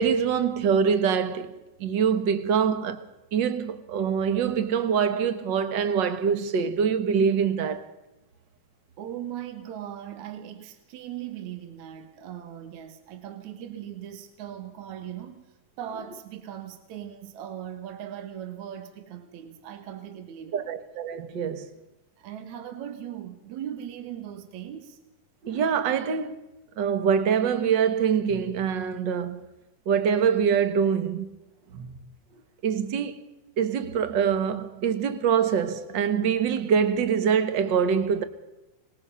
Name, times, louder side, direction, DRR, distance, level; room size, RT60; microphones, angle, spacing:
voice 1, 0.0-7.9 20.5-21.7 25.4-26.4 26.8-29.4 29.8-31.4 31.7-32.0 32.6-33.2 33.6-38.2, right 7 dB, 50° right, 1.5 m, -24 dB
voice 2, 9.0-15.4 15.8-20.7 22.2-25.0 33.5-33.6, right 10 dB, 70° right, 2.7 m, -39 dB
25.5 x 20.0 x 5.6 m
omnidirectional pair, 3.6 m